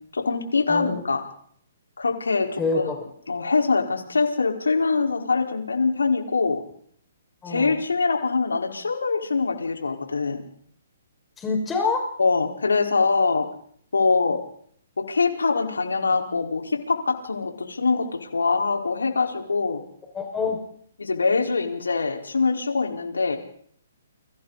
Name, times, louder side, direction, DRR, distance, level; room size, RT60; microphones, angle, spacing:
voice 1, 0.1-1.2 2.0-2.8 3.3-6.6 7.5-10.4 12.2-13.5 13.9-14.4 15.0-19.8 21.0-23.4, left 4 dB, 85° left, 2 dB, 5.0 m, -23 dB
voice 2, 2.6-3.0 7.4-7.8 11.4-12.1 20.1-20.6, left 4 dB, 15° left, 1 dB, 6.1 m, -26 dB
30.0 x 24.0 x 4.3 m, 0.63 s
hypercardioid pair, 135°, 0 cm